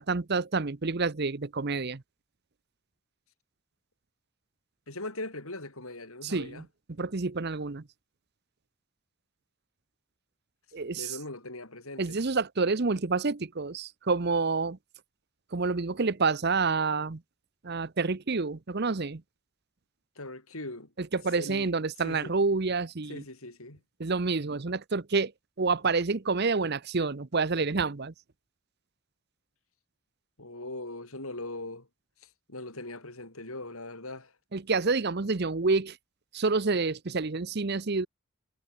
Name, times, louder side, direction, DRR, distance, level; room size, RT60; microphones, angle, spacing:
voice 1, 0.0-2.0 6.2-6.6 7.0-7.8 10.7-11.2 12.0-14.8 15.5-17.2 17.6-19.2 21.0-23.2 24.0-25.3 25.6-28.1 34.5-36.0 36.3-38.1, right 4 dB, 45° right, 0.8 m, -28 dB
voice 2, 4.9-6.7 10.9-12.2 20.2-20.9 21.4-21.7 22.0-22.3 23.1-23.8 30.4-31.9 32.2-34.3, left 2 dB, 75° left, 6.7 m, -40 dB
head